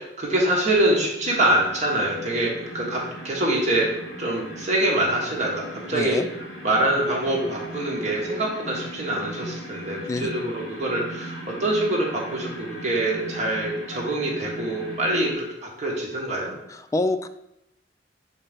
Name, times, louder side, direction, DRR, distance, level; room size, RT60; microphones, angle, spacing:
voice 1, 0.0-3.9 4.2-6.2 6.6-16.5, right 1 dB, 40° right, -2 dB, 1.4 m, -25 dB
sound 1, 1.2-15.3, right 1 dB, 65° left, 2.2 m, -38 dB
voice 2, 5.9-6.3 10.1-10.3 16.7-17.3, left 2 dB, 20° left, 9 dB, 0.3 m, -26 dB
4.3 x 4.3 x 5.2 m, 0.83 s
head